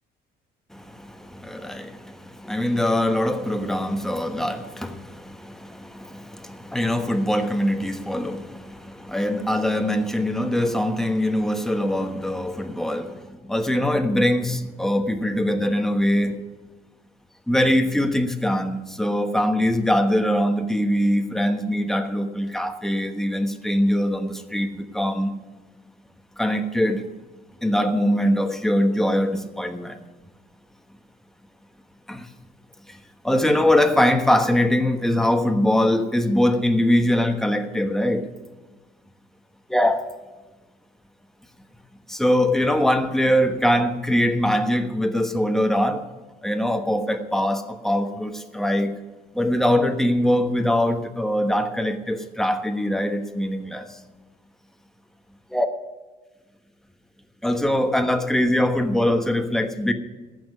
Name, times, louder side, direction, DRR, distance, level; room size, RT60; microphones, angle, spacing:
voice 1, 0.7-16.4 17.5-25.3 26.4-27.0 27.6-30.0 32.1-32.3 32.9-33.0 33.2-38.3 39.7-40.0 42.1-46.0 46.4-49.0 49.3-54.0 55.5-55.7 57.4-59.9, left 1 dB, ahead, 1.2 m, -22 dB
14.0 x 6.1 x 9.7 m
cardioid pair, 110°, 17 cm